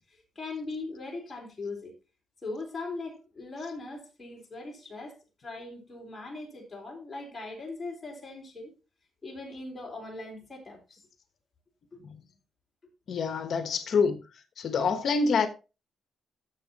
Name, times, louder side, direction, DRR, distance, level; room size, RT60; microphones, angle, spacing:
voice 1, 0.1-1.9 2.4-8.7 9.2-11.0 11.9-12.0, left 3 dB, 15° left, 3.9 m, -40 dB
voice 2, 13.1-14.2 14.6-15.5, left 5 dB, 50° left, 1.1 m, -26 dB
13.0 x 7.3 x 2.9 m
wide cardioid pair, 170°, 0 cm